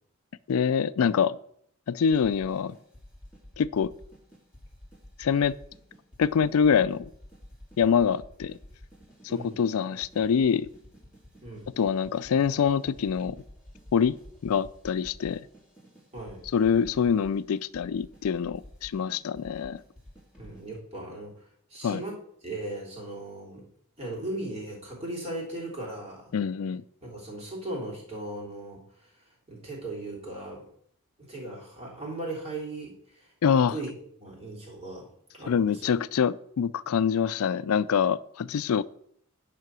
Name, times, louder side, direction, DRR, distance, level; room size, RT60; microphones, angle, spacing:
voice 1, 0.5-1.4 1.9-2.8 3.6-3.9 5.2-5.5 6.2-7.1 7.8-8.6 9.2-10.7 11.8-13.4 13.9-14.2 14.4-15.5 16.4-19.8 21.8-22.0 26.3-26.8 33.4-33.8 35.5-38.8, left 7 dB, 75° left, 17 dB, 0.4 m, -25 dB
sound 1, 2.1-20.8, equal, 5° right, 2.5 m, -51 dB
voice 2, 9.3-9.6 11.4-11.7 16.1-16.4 20.4-21.3 21.7-23.6 24.0-26.3 27.0-29.1 29.5-30.7 31.2-33.9 34.2-35.1 35.3-35.9, right 2 dB, 25° right, -3 dB, 3.4 m, -38 dB
9.4 x 5.8 x 6.1 m, 0.67 s
head